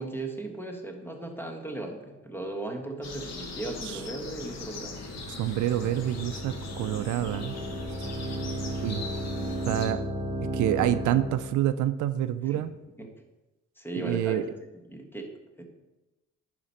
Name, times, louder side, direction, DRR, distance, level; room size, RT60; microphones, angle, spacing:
voice 1, 0.0-5.0 12.4-13.1 13.8-15.3 15.6-15.7, right 2 dB, 5° left, 2 dB, 1.5 m, -37 dB
sound 1, 3.0-9.9, left 3 dB, 60° left, 1.4 m, -40 dB
sound 2, 4.7-11.5, right 1 dB, 25° right, 1.0 m, -34 dB
voice 2, 5.3-7.6 8.0-8.1 8.8-9.1 9.7-10.0 10.5-12.7 14.0-14.5, right 12 dB, 75° right, 12 dB, 0.5 m, -27 dB
11.0 x 5.1 x 4.3 m, 1.1 s
cardioid pair, 90°, 30 cm